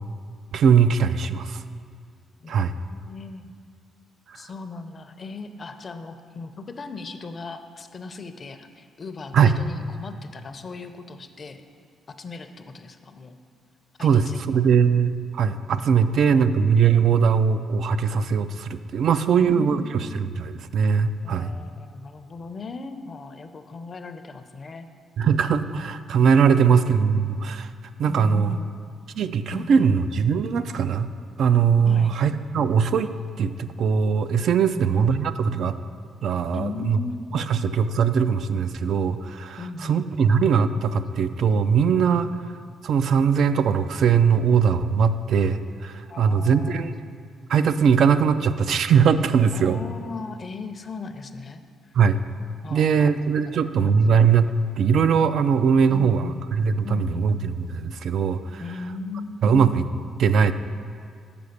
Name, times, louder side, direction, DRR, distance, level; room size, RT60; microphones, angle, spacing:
voice 1, 0.5-1.6 2.5-2.7 9.3-9.6 14.0-21.5 25.2-27.7 28.0-28.6 29.2-31.1 31.4-35.8 36.2-37.0 37.3-42.3 42.8-46.9 47.5-49.8 51.9-52.2 52.7-54.5 54.8-58.6 59.4-59.9 60.2-60.5, right 6 dB, 65° right, 11 dB, 0.3 m, -21 dB
voice 2, 2.4-3.5 4.3-11.6 12.2-13.4 14.0-14.6 16.0-16.6 19.3-20.0 21.2-24.9 28.0-28.8 29.5-30.0 31.8-32.1 34.6-35.1 36.5-37.4 39.6-40.4 46.1-47.0 49.5-52.0 52.6-53.1 53.4-53.9 55.9-56.4 56.8-57.3 58.6-59.5, left 4 dB, 40° left, 8 dB, 0.5 m, -38 dB
6.9 x 4.9 x 6.5 m, 2.2 s
cardioid pair, 90°, 0 cm